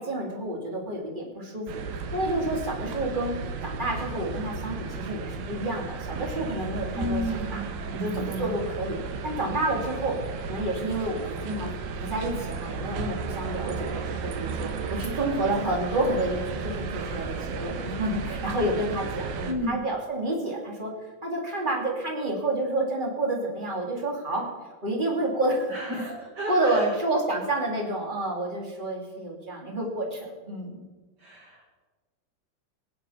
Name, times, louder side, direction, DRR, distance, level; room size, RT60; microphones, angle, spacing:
voice 1, 0.0-3.3 3.6-7.6 7.9-10.2 10.4-20.9 21.2-24.4 24.8-26.2 26.5-30.8, right 1 dB, 15° right, -1 dB, 2.4 m, -29 dB
sound 1, 1.7-19.5, right 5 dB, 90° right, 3.2 m, -34 dB
voice 2, 6.9-8.6 19.5-19.8 25.7-26.9 31.2-31.7, equal, 50° right, -1 dB, 1.2 m, -32 dB
21.0 x 7.8 x 5.8 m, 1.3 s
omnidirectional pair, 4.4 m